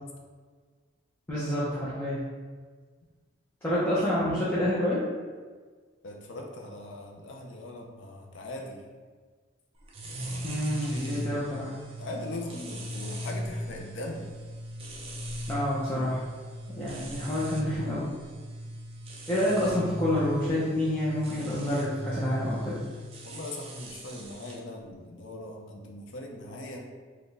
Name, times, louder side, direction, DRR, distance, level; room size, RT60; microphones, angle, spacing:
voice 1, 1.3-2.2 3.6-5.0 10.4-11.7 15.5-16.2 16.8-18.1 19.3-22.8, left 1 dB, 10° left, -10 dB, 0.7 m, -28 dB
voice 2, 6.0-8.8 10.0-11.3 12.0-14.3 19.3-19.4 23.2-26.8, left 2 dB, 70° left, 0 dB, 0.5 m, -40 dB
sound 1, 9.9-24.6, equal, 30° right, 0.5 m, -39 dB
4.2 x 2.3 x 3.2 m, 1.5 s
head